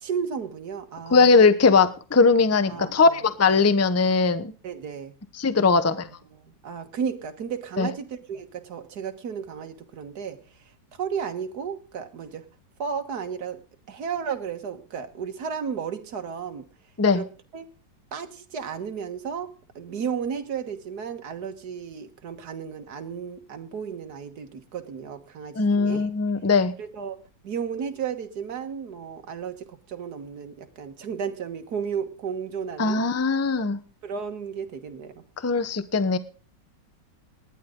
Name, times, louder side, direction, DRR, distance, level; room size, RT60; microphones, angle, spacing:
voice 1, 0.0-1.5 2.7-3.2 4.6-5.1 5.7-6.0 6.3-10.4 11.0-12.4 12.8-13.6 13.9-16.6 17.1-17.3 17.5-17.7 18.1-26.1 26.8-33.0 34.0-35.2, right 7 dB, 60° right, 7 dB, 2.0 m, -33 dB
voice 2, 1.1-4.5 5.4-6.1 7.8-7.9 17.0-17.2 25.5-26.7 32.8-33.8 35.4-36.2, left 4 dB, 15° left, 13 dB, 0.5 m, -20 dB
19.0 x 11.0 x 3.8 m, 0.37 s
omnidirectional pair, 1.9 m